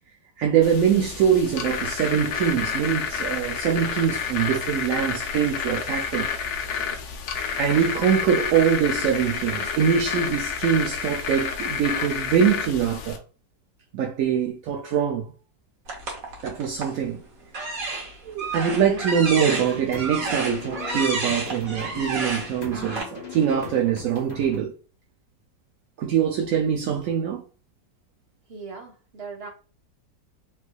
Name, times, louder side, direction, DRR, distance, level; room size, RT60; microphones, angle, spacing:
voice 1, 0.4-6.3 7.6-13.2 13.9-15.3 16.4-17.2 17.7-17.9 18.2-24.7 26.0-27.4, right 8 dB, 75° right, 0.8 m, -23 dB
sound 1, 0.6-13.2, left 6 dB, 75° left, 1.3 m, -30 dB
sound 2, 15.9-17.0 17.5-23.0, right 3 dB, 55° right, 1.3 m, -31 dB
sound 3, 19.1-24.6, left 4 dB, 45° left, 0.5 m, -39 dB
voice 2, 28.5-29.5, right 4 dB, 40° right, 1.0 m, -39 dB
3.4 x 3.2 x 2.3 m
omnidirectional pair, 1.9 m